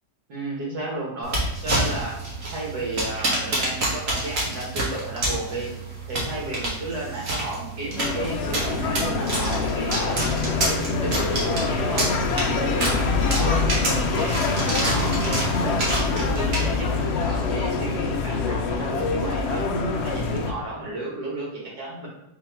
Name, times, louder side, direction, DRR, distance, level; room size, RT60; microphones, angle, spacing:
voice 1, 0.3-2.2 2.5-5.7 6.1-12.1 12.5-15.8 16.1-19.7 20.0-22.1, right 2 dB, 80° right, -4 dB, 2.0 m, -33 dB
sound 1, 1.2-17.0, right 2 dB, 55° right, 1.5 m, -29 dB
sound 2, 8.0-20.5, left 4 dB, 80° left, 0.6 m, -25 dB
3.9 x 2.9 x 4.4 m, 0.81 s
omnidirectional pair, 1.7 m